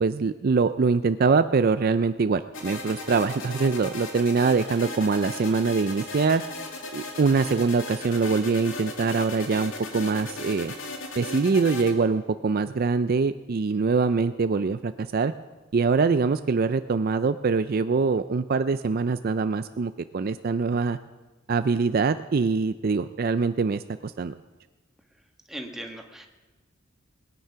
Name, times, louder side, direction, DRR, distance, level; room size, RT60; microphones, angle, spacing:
voice 1, 0.0-6.4 6.9-10.7 11.2-15.3 15.7-21.0 21.5-24.3, right 4 dB, 50° right, 12 dB, 0.4 m, -24 dB
sound 1, 2.5-11.9, left 2 dB, 75° left, 2.4 m, -37 dB
voice 2, 25.5-26.3, right 1 dB, ahead, 3 dB, 1.3 m, -38 dB
21.0 x 9.3 x 5.8 m, 1.2 s
head